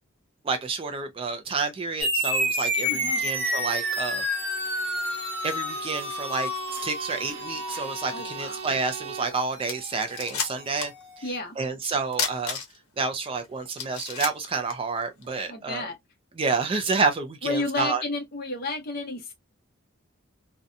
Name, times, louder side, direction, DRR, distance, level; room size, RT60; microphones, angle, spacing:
voice 1, 0.4-4.2 5.4-10.9 11.6-12.6 13.0-15.9 16.4-18.0, right 4 dB, 25° right, 0.3 m, -29 dB
sound 1, 2.0-10.9, equal, 5° left, 1.2 m, -30 dB
Bowed string instrument, 2.8-9.5, right 8 dB, 85° right, 0.5 m, -41 dB
voice 2, 2.9-3.3 8.1-8.7 11.2-11.5 15.5-16.0 17.4-19.3, left 2 dB, 45° left, 0.8 m, -32 dB
sound 2, 9.3-9.4 9.6-11.0 11.3-11.4 12.1-13.0 13.4-13.5 13.8-15.3, left 6 dB, 90° left, 0.8 m, -31 dB
2.6 x 2.1 x 2.4 m
head